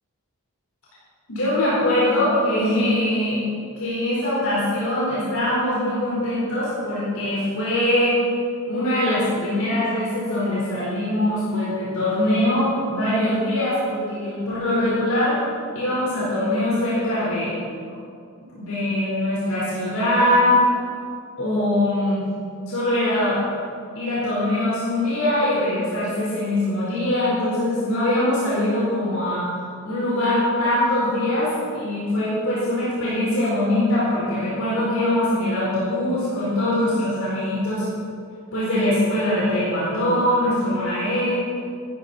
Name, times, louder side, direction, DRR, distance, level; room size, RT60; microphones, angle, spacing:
voice 1, 1.3-3.4 3.8-8.2 8.7-15.4 15.7-17.5 18.6-20.6 21.4-22.2 22.7-23.4 23.9-29.4 29.8-37.8 38.5-41.3, left 1 dB, 75° left, -8 dB, 4.5 m, -22 dB
16.0 x 14.0 x 4.3 m, 2.3 s
head